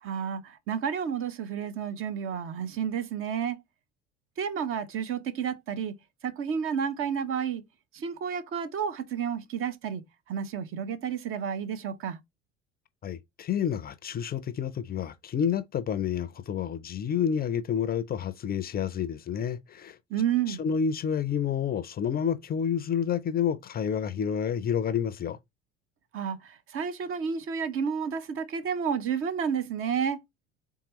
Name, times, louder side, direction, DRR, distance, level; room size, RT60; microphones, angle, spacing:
voice 1, 0.0-3.6 4.4-5.9 6.2-7.6 7.9-12.2 20.1-20.6 26.1-30.2, right 7 dB, 40° right, 0.8 m, -31 dB
voice 2, 13.0-20.0 20.5-25.4, left 8 dB, 30° left, 0.5 m, -29 dB
4.5 x 3.6 x 3.0 m
hypercardioid pair, 65°, 32 cm